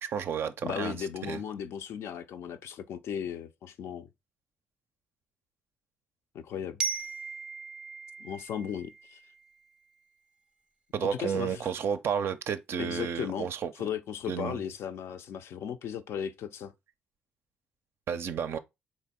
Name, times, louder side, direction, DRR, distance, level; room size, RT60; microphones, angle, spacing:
voice 1, 0.0-1.0 1.2-1.4 10.9-13.9 14.3-14.6 18.1-18.6, right 7 dB, 50° right, 0.4 m, -32 dB
voice 2, 0.6-4.1 6.3-6.8 8.2-9.2 11.0-11.7 12.8-13.5 13.8-16.7, left 8 dB, 55° left, 0.4 m, -36 dB
Glockenspiel, 6.8-9.7, right 5 dB, 15° right, 0.7 m, -38 dB
3.9 x 3.1 x 3.5 m
figure-of-eight pair, 40°, 5 cm